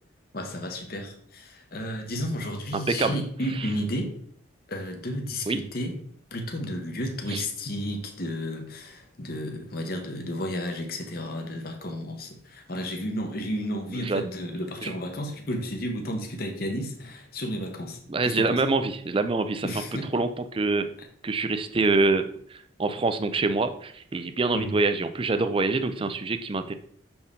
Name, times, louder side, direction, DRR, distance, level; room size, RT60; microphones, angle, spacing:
voice 1, 0.3-4.1 4.7-6.0 6.3-18.6 19.6-20.2 21.0-21.1 24.5-24.7, equal, 50° left, 4 dB, 1.0 m, -32 dB
voice 2, 2.7-3.2 5.5-5.6 7.3-7.4 13.9-14.3 14.8-14.9 18.1-19.7 20.1-20.9 21.2-26.7, right 3 dB, 25° right, 9 dB, 0.4 m, -25 dB
6.7 x 4.4 x 3.6 m, 0.62 s
head